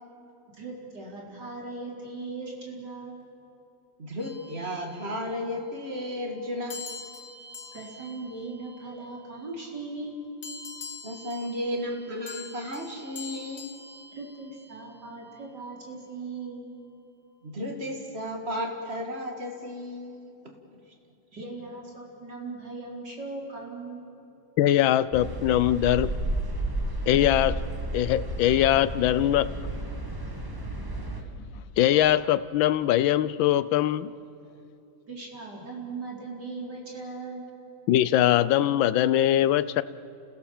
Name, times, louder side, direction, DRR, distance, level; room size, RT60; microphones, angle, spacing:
voice 1, 0.5-3.3 7.7-10.3 14.2-16.7 21.4-24.1 35.1-37.5, right 3 dB, 55° right, -2 dB, 4.7 m, -39 dB
voice 2, 4.0-6.8 11.0-13.7 17.4-20.5, left 1 dB, 30° right, 3 dB, 2.5 m, -34 dB
sound 1, 4.2-5.4 6.7-9.4 10.4-15.0, left 4 dB, 60° left, 2.1 m, -44 dB
voice 3, 24.6-26.1 27.1-27.6 27.9-29.5 31.8-34.1 37.9-39.8, left 12 dB, 80° left, 16 dB, 1.4 m, -22 dB
sound 2, 25.1-31.2, right 1 dB, 10° right, 1.7 m, -32 dB
30.0 x 16.5 x 7.2 m, 2.7 s
omnidirectional pair, 2.1 m